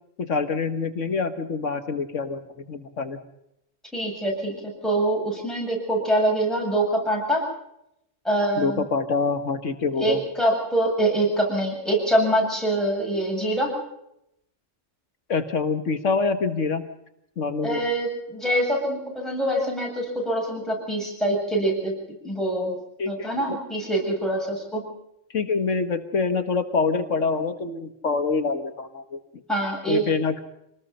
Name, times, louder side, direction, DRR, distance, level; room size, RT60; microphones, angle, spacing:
voice 1, 0.2-3.2 8.6-10.2 15.3-16.8 17.4-17.9 23.0-23.6 25.3-29.2 29.9-30.4, left 4 dB, 75° left, 8 dB, 1.8 m, -26 dB
voice 2, 3.9-7.5 8.2-8.8 10.0-13.8 17.6-21.9 22.2-22.8 23.1-24.9 29.5-30.0, right 1 dB, ahead, -1 dB, 7.9 m, -24 dB
27.0 x 19.5 x 5.6 m, 0.79 s
omnidirectional pair, 1.3 m